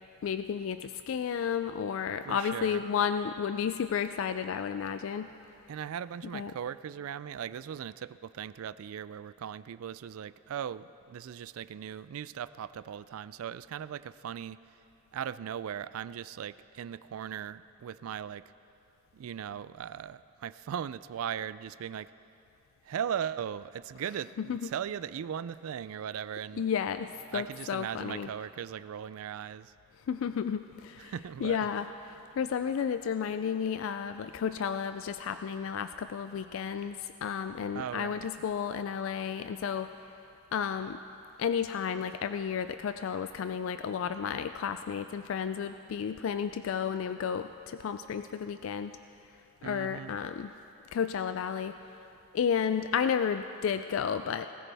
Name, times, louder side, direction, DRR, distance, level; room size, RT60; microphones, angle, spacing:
voice 1, 0.2-5.3 6.3-6.5 24.4-24.6 26.6-28.3 30.1-31.1 31.4-31.9 32.4-39.9 40.5-41.0 41.4-48.9 49.6-50.5 50.9-51.8 52.3-54.5, left 7 dB, 70° left, 10 dB, 0.3 m, -32 dB
voice 2, 2.2-2.8 5.7-14.6 15.1-18.4 19.1-22.1 22.8-26.6 27.3-29.7 31.0-31.7 37.7-38.3 49.6-50.2, right 8 dB, 80° right, 16 dB, 0.3 m, -38 dB
20.0 x 14.0 x 3.4 m, 2.8 s
head